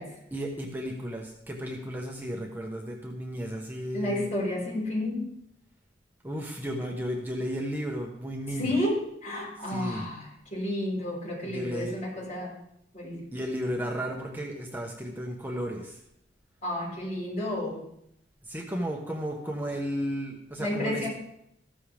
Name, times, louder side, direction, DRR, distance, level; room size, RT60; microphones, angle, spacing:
voice 1, 0.3-4.3 6.2-8.8 9.6-10.1 11.4-12.0 13.3-16.0 18.5-21.1, equal, 10° right, 1 dB, 1.2 m, -34 dB
voice 2, 3.9-5.3 8.6-12.5 12.9-13.3 16.6-17.8 20.6-21.1, left 1 dB, 45° left, -4 dB, 5.3 m, -31 dB
15.0 x 12.5 x 3.5 m, 0.75 s
head